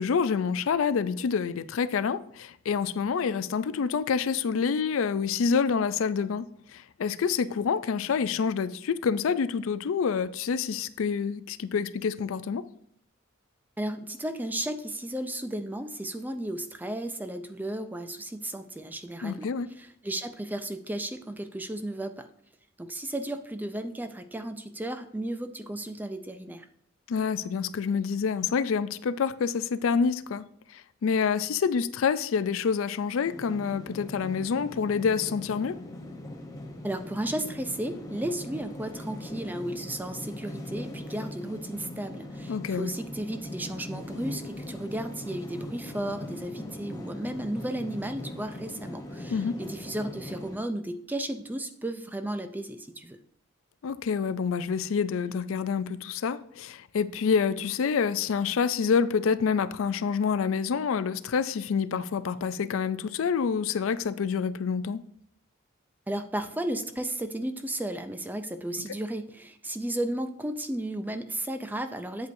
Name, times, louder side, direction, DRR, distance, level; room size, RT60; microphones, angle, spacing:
voice 1, 0.0-6.4 6.7-12.6 19.2-19.7 27.1-30.4 30.7-35.8 42.5-42.9 49.3-49.5 53.8-65.0, left 6 dB, 75° left, 0.4 m, -27 dB
voice 2, 13.8-19.5 19.8-22.3 22.8-26.7 36.8-53.2 66.1-72.3, right 1 dB, 10° right, 0.4 m, -34 dB
sound 1, 33.2-50.6, left 1 dB, 15° left, 0.9 m, -40 dB
8.0 x 8.0 x 2.6 m
head